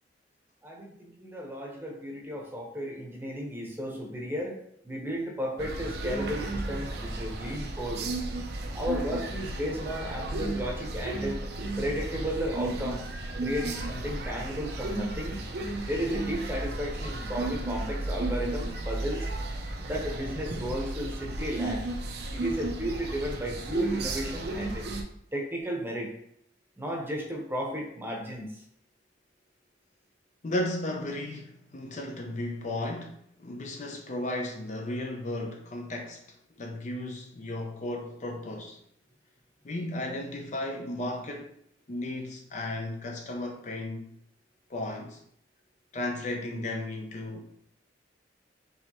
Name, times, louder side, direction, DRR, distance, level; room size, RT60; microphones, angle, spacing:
voice 1, 0.6-4.6 4.8-8.1 8.7-11.4 11.8-13.1 13.4-15.4 15.8-19.3 19.8-21.8 22.3-24.9 25.3-26.1 26.8-28.6, equal, 10° right, -1 dB, 0.9 m, -34 dB
sound 1, 5.6-25.0, right 2 dB, 60° right, 0.6 m, -34 dB
voice 2, 30.4-36.2 36.6-38.8 39.6-41.5 41.9-44.1 44.7-45.2 45.9-47.4, left 1 dB, 40° left, 2 dB, 0.5 m, -34 dB
4.6 x 3.2 x 2.9 m, 0.71 s
head